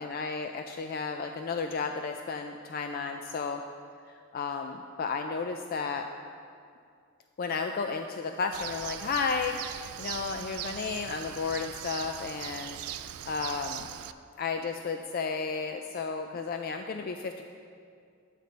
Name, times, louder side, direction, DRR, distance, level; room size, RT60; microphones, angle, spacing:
voice 1, 0.0-3.6 4.1-6.1 7.4-13.9 14.4-17.4, left 5 dB, 40° left, 5 dB, 0.3 m, -33 dB
Bird, 8.5-14.1, right 11 dB, 80° right, 0.3 m, -40 dB
10.5 x 8.3 x 4.0 m, 2.3 s
head